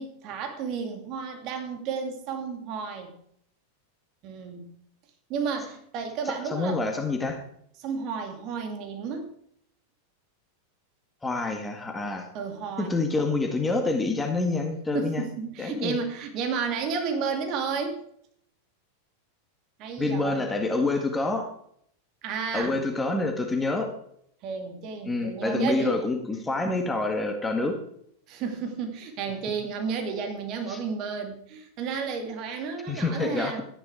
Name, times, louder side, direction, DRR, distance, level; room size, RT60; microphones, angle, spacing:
voice 1, 0.0-3.1 4.2-4.7 5.3-6.9 7.8-9.3 12.3-13.0 14.9-18.0 19.8-20.5 22.2-22.8 24.4-26.0 28.3-33.6, right 5 dB, 40° right, 5 dB, 2.5 m, -32 dB
voice 2, 6.5-7.4 11.2-12.3 12.8-15.2 15.6-16.0 20.0-21.5 22.5-23.9 25.0-27.8 30.7-30.8 32.9-33.6, left 3 dB, 10° left, 3 dB, 1.8 m, -27 dB
13.0 x 10.0 x 4.9 m, 0.69 s
figure-of-eight pair, 90°, 0 cm